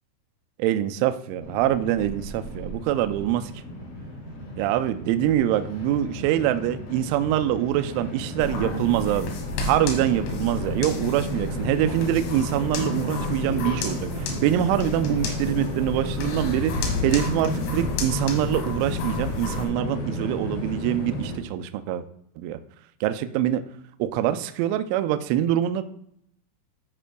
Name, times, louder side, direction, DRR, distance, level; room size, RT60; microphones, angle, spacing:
voice 1, 0.6-3.5 4.6-9.3 9.7-22.0 22.4-22.6 23.0-23.6 24.0-25.8, right 12 dB, 85° right, 10 dB, 2.7 m, -24 dB
Train, 1.4-21.4, left 1 dB, 55° left, 3.4 m, -33 dB
sound 1, 8.4-19.7, left 3 dB, 80° left, 3.9 m, -32 dB
13.5 x 5.3 x 2.2 m, 0.72 s
omnidirectional pair, 5.9 m